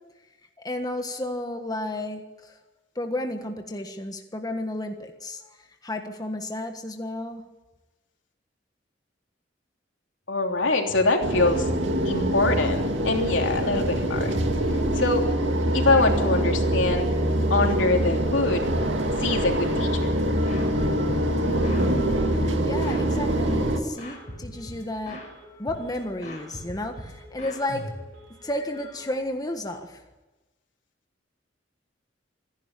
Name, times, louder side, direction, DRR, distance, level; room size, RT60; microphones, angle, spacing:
voice 1, 0.6-2.6 2.9-7.4 22.0-25.2 25.5-27.9 28.4-30.0, left 1 dB, 20° left, 5 dB, 1.4 m, -32 dB
voice 2, 10.3-11.7 12.0-14.3 14.9-15.2 15.7-17.1 17.5-18.6 19.2-20.1, left 3 dB, 85° left, 2 dB, 3.2 m, -24 dB
sound 1, 11.2-23.8, right 1 dB, 80° right, 2.4 m, -24 dB
Telephone, 14.0-14.1 14.3-14.4 14.7-15.1 15.4-15.5 15.8-16.1 16.5-16.6 17.1-17.8 18.5-18.8 19.0-19.8 20.4-23.1 23.3-23.7 23.9-24.3 24.5-24.9 25.1-25.5 25.7-26.1 26.3-26.7 26.9-27.9 28.1-28.5 28.7-29.0, right 2 dB, 65° right, 4.0 m, -49 dB
sound 2, 19.0-19.1 19.3-20.7 21.1-23.1 23.4-23.7 24.0-25.3 25.7-26.0 26.2-28.3, left 1 dB, 40° left, 6.1 m, -40 dB
26.0 x 11.0 x 9.8 m, 1.1 s
head